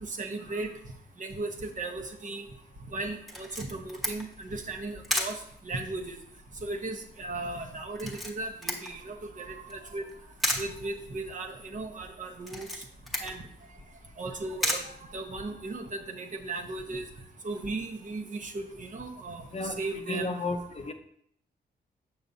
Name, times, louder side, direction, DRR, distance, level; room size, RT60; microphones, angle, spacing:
voice 1, 0.0-0.8 1.2-2.5 2.9-6.2 6.6-10.1 10.6-12.8 13.2-13.4 14.2-17.0 17.4-20.5, right 2 dB, 45° right, 3 dB, 0.9 m, -36 dB
Camera, 3.3-15.8, equal, ahead, 1.1 m, -37 dB
voice 2, 19.5-20.9, left 2 dB, 35° left, 7 dB, 0.6 m, -33 dB
6.9 x 6.0 x 2.6 m, 0.68 s
cardioid pair, 90°, 18 cm